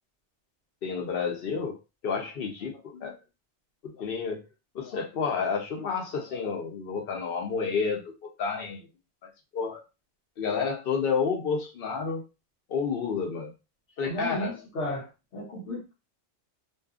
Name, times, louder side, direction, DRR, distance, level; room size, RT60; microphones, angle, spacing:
voice 1, 0.8-3.2 3.8-4.4 4.7-8.9 9.5-9.8 10.4-12.2 12.7-13.5 14.0-14.6, left 5 dB, 60° left, 0.8 m, -30 dB
voice 2, 14.1-15.9, left 1 dB, 80° left, 1.1 m, -34 dB
2.6 x 2.3 x 2.4 m
omnidirectional pair, 1.2 m